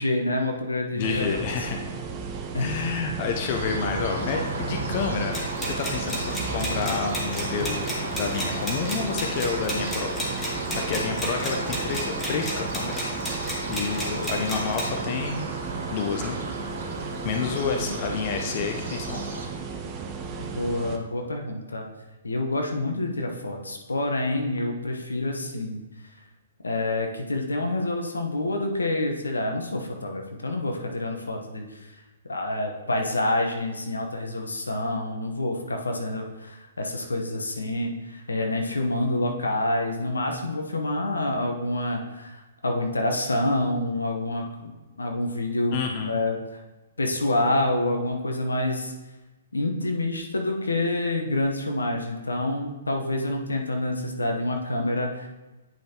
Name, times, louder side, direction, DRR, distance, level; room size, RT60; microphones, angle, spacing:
voice 1, 0.0-1.4 1.9-2.0 2.5-2.7 17.8-17.9 20.4-21.9 22.2-25.8 26.6-31.9 32.2-46.6 47.0-48.9 49.5-55.3, left 1 dB, 80° left, 2 dB, 1.0 m, -27 dB
voice 2, 0.9-1.8 2.6-6.2 6.5-10.2 10.7-15.5 15.9-16.4 17.2-19.4 45.7-46.2, left 6 dB, 40° left, 3 dB, 0.7 m, -29 dB
sound 1, 1.0-21.0, right 5 dB, 25° right, 0.7 m, -35 dB
sound 2, 3.5-19.5, right 2 dB, 60° right, 1.7 m, -34 dB
sound 3, 5.3-14.9, equal, 10° left, 1.6 m, -33 dB
8.9 x 5.3 x 2.9 m, 1.1 s
figure-of-eight pair, 120°, 0 cm